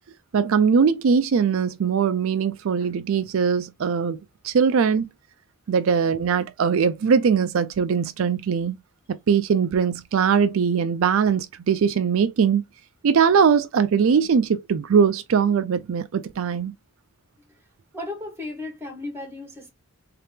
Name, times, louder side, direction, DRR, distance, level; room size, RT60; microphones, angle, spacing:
voice 1, 0.3-4.2 4.4-5.1 5.7-8.8 9.1-12.6 13.0-16.7, right 6 dB, 70° right, 0.4 m, -21 dB
voice 2, 17.9-19.7, left 2 dB, 10° right, 1.4 m, -35 dB
3.6 x 2.9 x 3.4 m
head